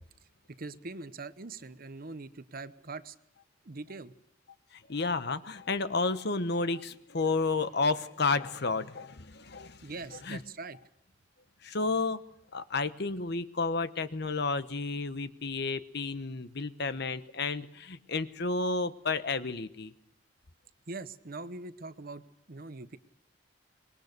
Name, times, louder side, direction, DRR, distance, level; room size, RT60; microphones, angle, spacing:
voice 1, 0.5-3.2 3.6-4.1 9.8-10.8 20.9-23.0, right 3 dB, 50° right, 13 dB, 0.9 m, -42 dB
voice 2, 4.7-9.9 10.2-10.4 11.6-12.2 12.5-19.9, left 3 dB, 60° left, 12 dB, 1.1 m, -31 dB
25.0 x 21.0 x 6.7 m, 0.75 s
head